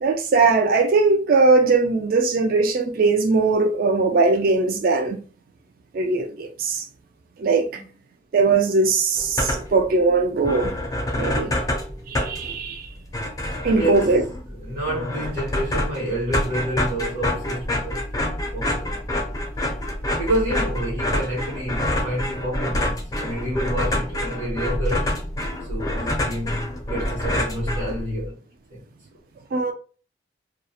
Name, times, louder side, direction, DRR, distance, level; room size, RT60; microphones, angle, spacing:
voice 1, 0.0-5.2 5.9-6.8 7.4-7.7 8.3-10.7 11.2-11.5 12.1-12.9 13.6-14.2 29.5-29.7, right 3 dB, 45° right, 0.3 m, -20 dB
sound 1, 9.2-9.9 10.2-10.3 10.4-28.3, left 1 dB, 20° left, 0.4 m, -27 dB
voice 2, 13.7-14.2 14.5-19.3 20.2-25.2 25.7-26.6 26.9-28.4 28.7-28.8, equal, 65° right, 1.1 m, -29 dB
2.3 x 2.0 x 2.7 m
head